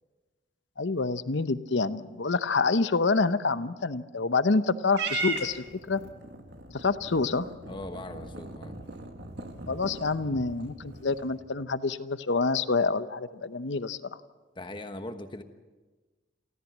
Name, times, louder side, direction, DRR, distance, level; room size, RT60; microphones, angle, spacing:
voice 1, 0.8-6.0 6.7-7.5 9.7-14.0, left 4 dB, 70° left, 13 dB, 0.8 m, -27 dB
Purr / Meow, 4.9-11.4, right 3 dB, 60° right, 2.1 m, -38 dB
voice 2, 7.7-8.8 14.5-15.4, left 1 dB, 25° left, 8 dB, 1.2 m, -40 dB
28.0 x 14.0 x 7.3 m, 1.3 s
head